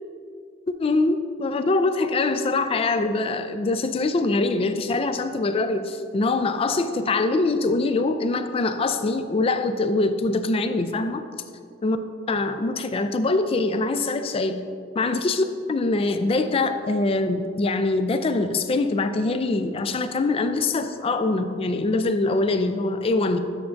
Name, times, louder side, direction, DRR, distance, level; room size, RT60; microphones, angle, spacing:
voice 1, 0.7-11.2 11.8-12.0 12.3-14.6 15.0-23.4, left 3 dB, 30° left, 9 dB, 0.3 m, -23 dB
9.0 x 6.9 x 2.6 m, 2.2 s
head